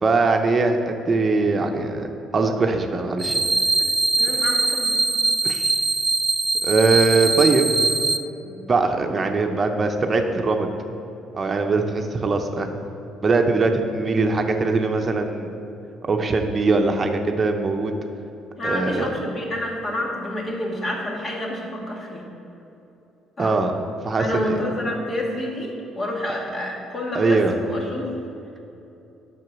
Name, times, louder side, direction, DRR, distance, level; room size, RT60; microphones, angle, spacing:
voice 1, 0.0-3.4 3.8-3.9 5.4-5.7 6.6-7.7 8.4-10.7 11.3-12.7 13.2-15.5 16.0-17.9 18.6-19.1 23.4-23.7 24.0-24.6 27.1-27.5, right 3 dB, 35° right, 4 dB, 0.8 m, -21 dB
sound 1, 3.2-8.2, right 3 dB, 15° right, 0.4 m, -22 dB
voice 2, 4.2-5.0 18.6-22.2 23.4-23.6 24.2-28.1, left 1 dB, 40° left, -1 dB, 2.0 m, -28 dB
7.6 x 6.0 x 6.0 m, 2.9 s
supercardioid pair, 70°, 0 cm